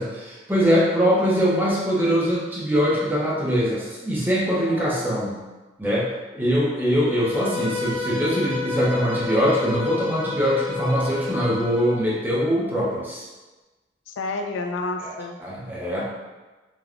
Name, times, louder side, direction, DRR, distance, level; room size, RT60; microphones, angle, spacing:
voice 1, 0.0-5.4 5.8-6.1 6.3-13.3 15.0-15.1 15.4-16.0, equal, 10° right, -6 dB, 0.5 m, -22 dB
voice 2, 4.7-5.1 7.4-7.8 14.1-15.4 16.0-16.1, left 3 dB, 85° left, 4 dB, 0.3 m, -31 dB
Bowed string instrument, 7.0-12.0, left 4 dB, 25° left, 0.9 m, -30 dB
3.4 x 2.2 x 2.3 m, 1.2 s
head